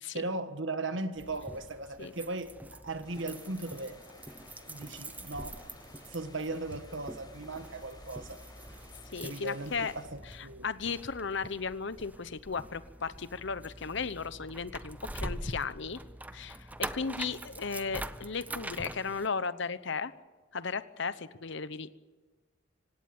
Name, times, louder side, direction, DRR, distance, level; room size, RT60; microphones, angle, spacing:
voice 1, 0.1-4.0 4.7-5.6 6.1-8.4 9.2-10.7, right 2 dB, 65° right, 9 dB, 1.6 m, -37 dB
sound 1, 1.2-19.3, right 1 dB, 10° right, 0.7 m, -44 dB
sound 2, 3.0-10.1, left 2 dB, 20° left, 5.4 m, -55 dB
voice 2, 9.1-9.9 10.3-16.0 16.3-20.1 20.5-21.9, left 5 dB, 65° left, 14 dB, 0.9 m, -35 dB
25.0 x 17.5 x 8.9 m, 1.3 s
head